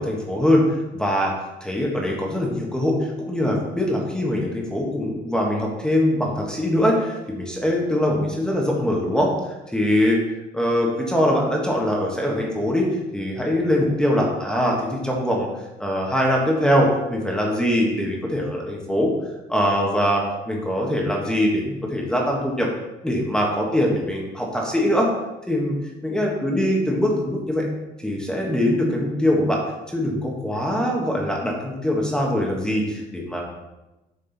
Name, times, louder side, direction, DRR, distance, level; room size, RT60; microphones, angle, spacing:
voice 1, 0.0-1.3 1.6-10.2 10.5-12.9 13.1-15.5 15.8-19.1 19.5-22.7 23.0-25.1 25.5-25.8 26.0-27.6 28.0-29.6 29.9-33.4, equal, 5° left, -1 dB, 1.4 m, -22 dB
7.6 x 5.3 x 4.1 m, 1.0 s
cardioid pair, 110°, 17 cm